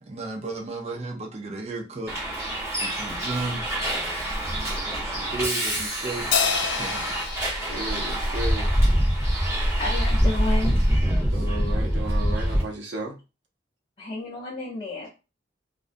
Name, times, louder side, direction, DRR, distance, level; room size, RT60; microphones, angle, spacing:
voice 1, 0.0-2.4 2.8-3.8 4.6-6.3 6.8-7.1 7.9-8.1, right 3 dB, 35° right, 0.5 m, -34 dB
Bus, 2.1-12.6, equal, 15° right, 0.8 m, -25 dB
Crash cymbal, 6.3-9.0, left 6 dB, 70° left, 0.4 m, -29 dB
voice 2, 7.5-8.7 11.3-13.2, right 1 dB, 90° right, 0.7 m, -34 dB
voice 3, 9.8-11.1 14.0-15.1, left 2 dB, 30° left, 0.6 m, -32 dB
2.4 x 2.2 x 2.5 m
head